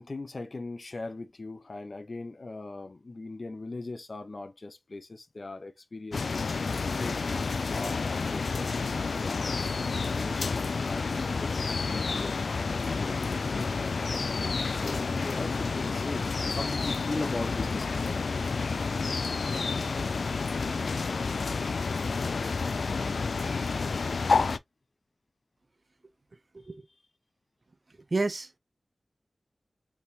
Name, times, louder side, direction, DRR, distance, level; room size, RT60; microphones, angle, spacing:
voice 1, 0.0-6.6 7.0-9.6 10.1-11.5 11.9-13.9 14.6-18.2, left 2 dB, 60° left, 0.7 m, -39 dB
sound 1, 6.1-24.6, left 4 dB, 85° left, 0.3 m, -30 dB
voice 2, 28.1-28.6, right 3 dB, 50° right, 0.6 m, -30 dB
4.4 x 3.5 x 2.8 m
wide cardioid pair, 55°, 0 cm